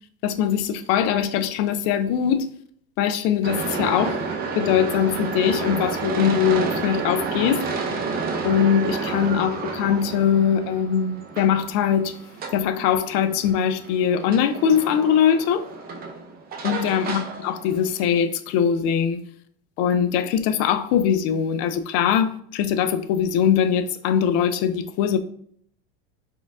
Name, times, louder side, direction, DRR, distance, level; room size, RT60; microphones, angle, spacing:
voice 1, 0.2-2.5 3.0-4.2 4.5-7.6 8.4-12.2 12.5-15.7 16.6-19.2 19.8-25.2, left 8 dB, 50° left, 0.4 m, -21 dB
sound 1, 3.4-18.2, right 4 dB, 30° right, 0.5 m, -30 dB
4.3 x 2.3 x 3.6 m
supercardioid pair, 115°, 32 cm